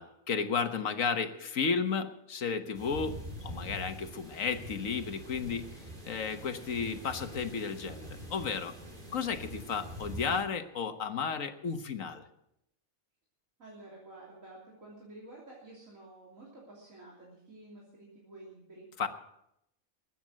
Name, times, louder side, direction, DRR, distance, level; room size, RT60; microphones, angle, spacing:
voice 1, 0.0-5.6 6.0-8.7 9.1-12.2 19.0-19.1, left 5 dB, 75° left, 8 dB, 1.6 m, -33 dB
sound 1, 2.7-10.4, right 1 dB, 35° right, 3.3 m, -44 dB
voice 2, 13.6-18.9, right 2 dB, 75° right, -4 dB, 3.6 m, -51 dB
21.0 x 9.1 x 6.4 m, 0.80 s
omnidirectional pair, 1.4 m